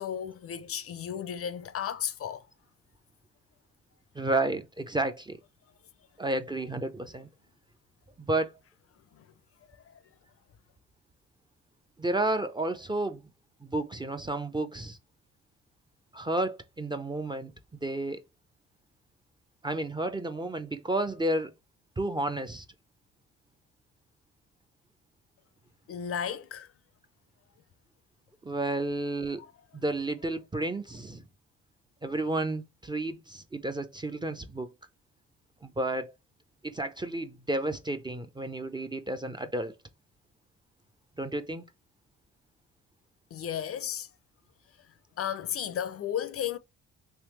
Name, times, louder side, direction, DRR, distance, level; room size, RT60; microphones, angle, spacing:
voice 1, 0.0-2.4 9.1-9.2 9.9-10.0 25.9-26.7 43.3-44.1 45.2-46.6, left 9 dB, 50° left, 0.5 m, -34 dB
voice 2, 4.1-5.4 6.2-7.3 8.2-8.5 12.0-13.2 13.6-15.0 16.1-17.5 17.8-18.2 19.6-21.5 22.0-22.6 28.4-29.4 29.7-31.2 32.0-34.7 35.6-36.1 36.6-39.7 41.2-41.6, right 2 dB, 15° right, 0.4 m, -31 dB
3.4 x 2.7 x 3.0 m
cardioid pair, 90°, 30 cm